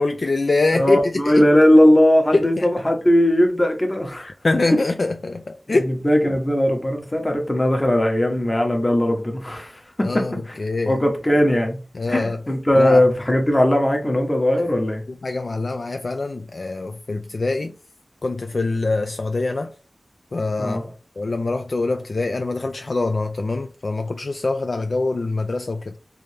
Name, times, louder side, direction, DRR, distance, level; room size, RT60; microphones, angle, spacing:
voice 1, 0.0-1.5 2.3-2.8 4.2-5.9 10.0-11.0 11.9-12.4 12.7-13.0 15.2-17.8 18.2-19.7 20.3-20.8 21.2-25.9, left 3 dB, 65° left, 0.3 m, -24 dB
voice 2, 0.7-4.3 5.7-9.7 10.0-10.1 10.5-10.6 10.9-11.8 12.1-15.0 20.6-20.9, left 1 dB, 25° left, 1.0 m, -18 dB
3.3 x 2.7 x 3.3 m
wide cardioid pair, 65°, 0 cm